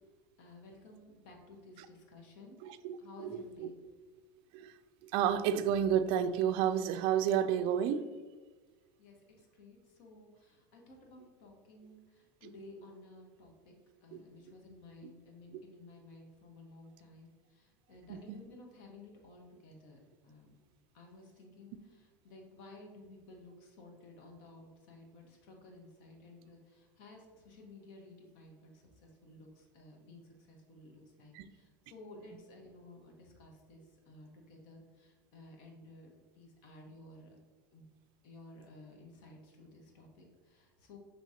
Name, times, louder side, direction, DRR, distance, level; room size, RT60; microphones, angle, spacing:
voice 1, 0.4-2.6 3.0-3.8 9.0-13.7 14.0-20.0 20.2-20.6 20.9-37.4 37.7-37.9 38.2-41.0, left 2 dB, 65° left, 1.1 m, -55 dB
voice 2, 2.6-3.7 4.5-4.7 5.0-8.1 14.1-14.2 15.0-15.1 18.1-18.4 31.3-31.4, right 9 dB, 55° right, 0.3 m, -31 dB
6.1 x 3.1 x 2.8 m
supercardioid pair, 120°, 11 cm